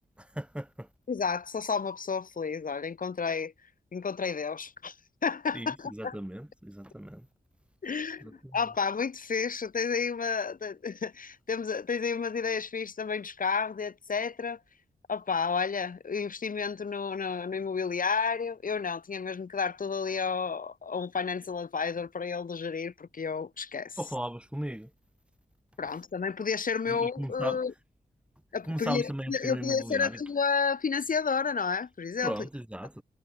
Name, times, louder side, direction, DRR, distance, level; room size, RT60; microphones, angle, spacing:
voice 1, 0.2-0.9 5.5-7.3 8.2-8.7 24.0-24.9 26.9-27.6 28.6-30.2 32.2-33.0, right 1 dB, 5° right, 5.8 m, -37 dB
voice 2, 1.1-3.5 3.9-4.9 5.2-6.2 7.8-14.6 15.1-24.0 25.8-27.7 28.5-32.3, left 5 dB, 60° left, 3.1 m, -31 dB
cardioid pair, 60°, 16 cm